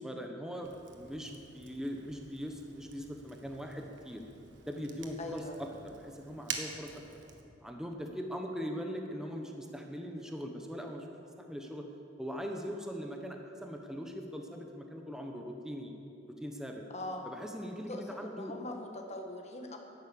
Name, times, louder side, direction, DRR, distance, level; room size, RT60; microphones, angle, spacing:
voice 1, 0.0-4.2 4.7-7.0 7.6-11.1 11.4-11.8 12.2-15.9 16.3-16.8 17.2-18.5, equal, 5° right, 2 dB, 1.0 m, -41 dB
Fire, 0.6-7.4, right 6 dB, 80° right, 1.4 m, -47 dB
voice 2, 5.2-5.6 16.9-17.3 17.9-19.8, left 2 dB, 35° left, 2 dB, 1.6 m, -41 dB
11.5 x 11.0 x 8.6 m, 2.7 s
head